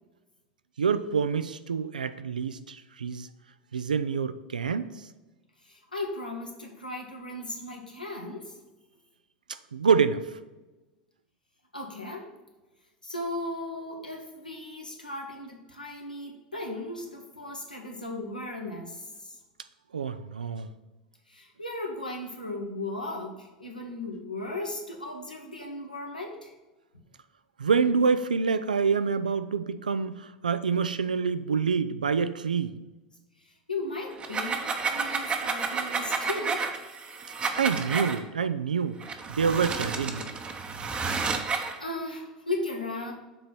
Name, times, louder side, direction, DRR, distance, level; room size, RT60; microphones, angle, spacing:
voice 1, 0.8-3.3 3.7-5.1 9.5-10.4 19.9-20.7 27.6-32.7 37.5-39.0 39.3-40.3, right 5 dB, 80° right, 0.4 m, -27 dB
voice 2, 5.6-8.6 11.7-12.3 13.0-19.4 21.3-26.5 33.7-36.7 41.5-43.1, left 2 dB, 90° left, 1.2 m, -36 dB
sound 1, 34.1-38.2 39.0-41.8, right 4 dB, 25° right, 0.8 m, -31 dB
6.8 x 4.0 x 5.7 m
figure-of-eight pair, 80°, 4 cm